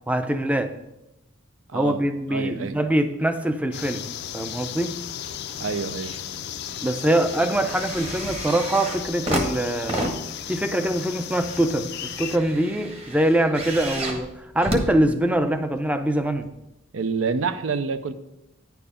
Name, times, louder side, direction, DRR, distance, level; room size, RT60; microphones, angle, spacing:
voice 1, 0.1-0.7 1.7-4.0 4.3-5.0 6.8-10.1 10.5-16.5, right 1 dB, 5° right, 9 dB, 0.5 m, -23 dB
voice 2, 1.7-2.0 2.3-2.8 5.6-6.2 16.9-18.1, right 5 dB, 70° right, 12 dB, 0.5 m, -27 dB
sound 1, 3.7-12.4, left 10 dB, 55° left, 0.4 m, -35 dB
sound 2, 5.2-5.9 6.3-15.7 16.4-16.5, right 1 dB, 30° right, 1.3 m, -32 dB
9.8 x 4.7 x 5.0 m, 0.91 s
head